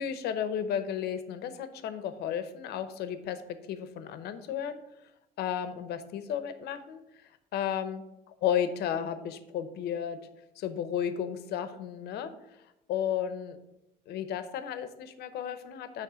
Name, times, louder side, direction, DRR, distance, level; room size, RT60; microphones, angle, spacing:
voice 1, 0.0-3.4 3.7-4.8 5.4-7.0 7.5-8.0 8.4-10.2 10.6-12.3 12.9-13.6 14.1-16.0, left 9 dB, 75° left, 11 dB, 0.8 m, -33 dB
8.6 x 3.2 x 6.2 m, 0.90 s
cardioid pair, 110°, 17 cm